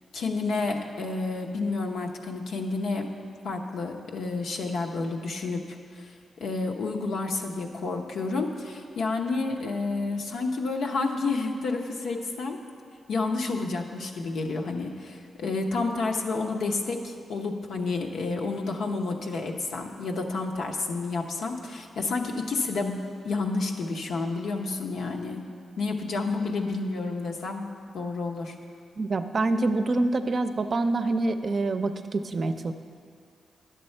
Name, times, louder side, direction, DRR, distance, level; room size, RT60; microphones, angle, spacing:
voice 1, 0.1-3.1 3.4-12.6 13.1-25.4 25.8-27.7 27.9-28.6, left 3 dB, 80° left, 2 dB, 0.8 m, -30 dB
voice 2, 29.0-32.7, right 2 dB, 50° right, 8 dB, 0.5 m, -26 dB
10.5 x 6.8 x 4.4 m, 2.2 s
cardioid pair, 55°, 0 cm